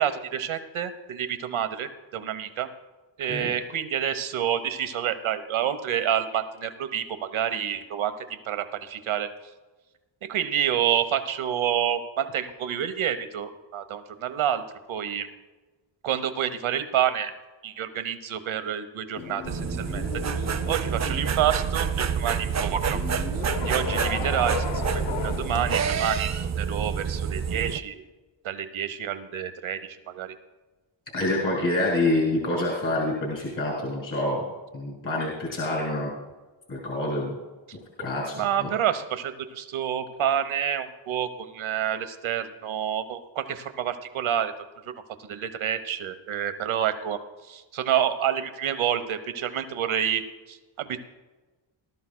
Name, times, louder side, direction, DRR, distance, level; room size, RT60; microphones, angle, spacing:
voice 1, 0.0-2.7 3.2-8.1 8.5-9.3 10.3-14.6 14.9-15.3 16.0-17.3 17.6-23.0 23.5-24.9 25.2-26.3 26.6-28.0 28.4-30.3 37.7-37.8 38.3-44.5 45.3-47.2 47.5-51.0, right 9 dB, 75° right, 10 dB, 1.0 m, -28 dB
sound 1, 19.1-25.8, left 6 dB, 85° left, 1.0 m, -35 dB
sound 2, 19.4-27.8, right 7 dB, 40° right, 0.4 m, -28 dB
voice 2, 31.1-34.5 34.7-36.1 36.7-37.3 38.0-38.7, left 2 dB, 40° left, -3 dB, 2.7 m, -27 dB
19.0 x 12.5 x 2.2 m, 1.2 s
wide cardioid pair, 145°, 48 cm